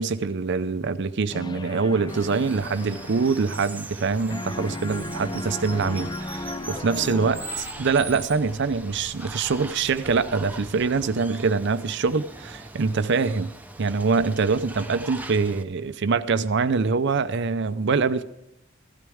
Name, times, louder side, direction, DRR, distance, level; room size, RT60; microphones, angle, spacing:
voice 1, 0.0-13.5 13.8-18.2, right 4 dB, 60° right, 12 dB, 0.6 m, -24 dB
sound 1, 1.3-4.1 4.3-7.9, left 2 dB, 20° left, 0.5 m, -36 dB
Water, 2.1-15.6, right 2 dB, 10° right, 0.7 m, -40 dB
sound 2, 4.9-11.1, left 2 dB, 50° left, 1.0 m, -49 dB
15.0 x 12.5 x 3.5 m, 0.90 s
head